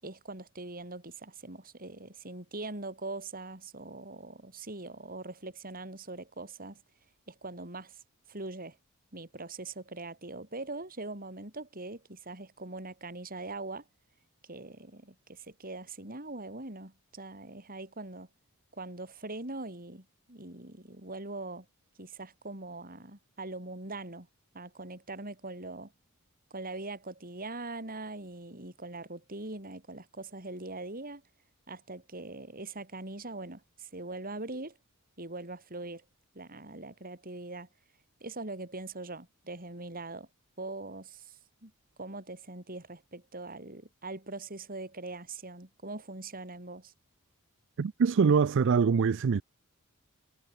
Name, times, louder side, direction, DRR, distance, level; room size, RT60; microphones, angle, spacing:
voice 1, 0.0-6.8 7.3-8.0 8.3-8.8 9.1-13.8 14.5-18.3 18.7-21.7 22.0-24.3 24.5-25.9 26.5-31.2 31.7-34.8 35.2-36.0 36.3-37.7 38.2-40.3 40.6-41.7 42.0-46.9, right 2 dB, 40° right, 5.7 m, -42 dB
voice 2, 47.8-49.4, right 5 dB, 60° right, 0.4 m, -24 dB
head